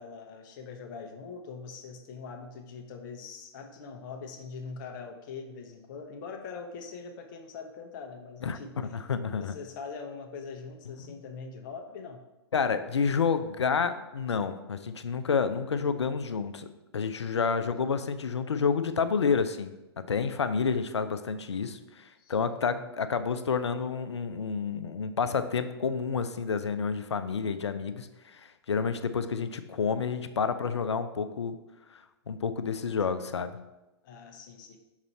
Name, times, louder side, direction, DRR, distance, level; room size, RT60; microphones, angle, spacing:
voice 1, 0.0-8.7 9.4-12.2 21.0-21.3 22.2-22.8 34.0-34.8, left 5 dB, 45° left, 5 dB, 0.9 m, -43 dB
voice 2, 8.4-9.6 11.0-11.2 12.5-16.7 16.9-31.6 31.9-32.0 32.3-33.6, left 5 dB, 80° left, 11 dB, 0.5 m, -29 dB
6.0 x 4.0 x 4.3 m, 1.0 s
figure-of-eight pair, 115°, 14 cm